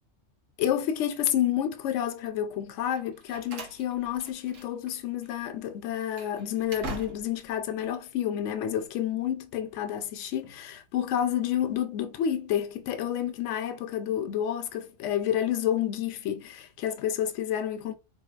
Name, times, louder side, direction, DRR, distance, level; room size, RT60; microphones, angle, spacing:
voice 1, 0.6-17.9, left 10 dB, 75° left, 0.9 m, -29 dB
Slam, 2.9-5.0 5.2-5.4 5.9-7.5, right 2 dB, 80° right, 1.3 m, -42 dB
3.8 x 2.7 x 2.4 m
omnidirectional pair, 1.3 m